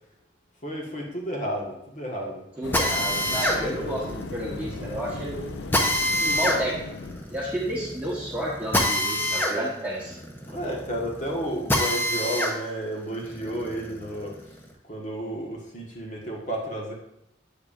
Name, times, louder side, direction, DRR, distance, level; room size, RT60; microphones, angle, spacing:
voice 1, 0.6-2.5 3.3-3.9 10.4-14.6 14.8-16.9, right 1 dB, 40° left, -2 dB, 1.4 m, -32 dB
sound 1, 2.6-7.7, left 3 dB, 75° left, 0.5 m, -37 dB
voice 2, 2.6-5.4 6.2-6.8 7.3-10.1, right 1 dB, 10° right, -7 dB, 1.1 m, -31 dB
Drill, 2.7-12.6 13.0-14.6, left 1 dB, 10° left, 0.7 m, -27 dB
8.5 x 8.0 x 2.5 m, 0.81 s
head